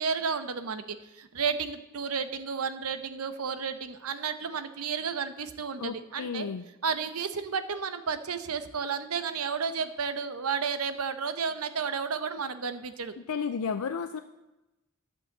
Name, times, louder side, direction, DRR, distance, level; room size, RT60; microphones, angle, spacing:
voice 1, 0.0-6.5 6.8-13.1, right 6 dB, 85° right, 11 dB, 0.9 m, -32 dB
voice 2, 5.8-6.7 13.3-14.2, left 6 dB, 80° left, 8 dB, 0.5 m, -32 dB
11.5 x 5.6 x 7.9 m, 1.0 s
head